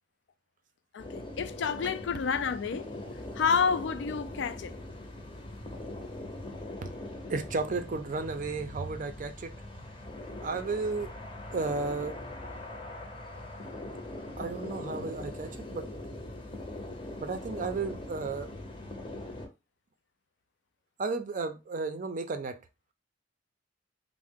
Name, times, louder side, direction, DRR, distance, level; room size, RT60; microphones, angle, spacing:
voice 1, 0.9-2.9 3.4-4.8, left 6 dB, 65° left, 0.3 m, -29 dB
sound 1, 1.0-19.5, left 1 dB, 30° left, 0.6 m, -41 dB
voice 2, 7.3-9.5 10.4-11.1 11.5-12.1 14.4-15.9 17.2-18.5 21.0-22.6, right 3 dB, 40° right, 0.4 m, -33 dB
3.5 x 2.0 x 3.5 m
head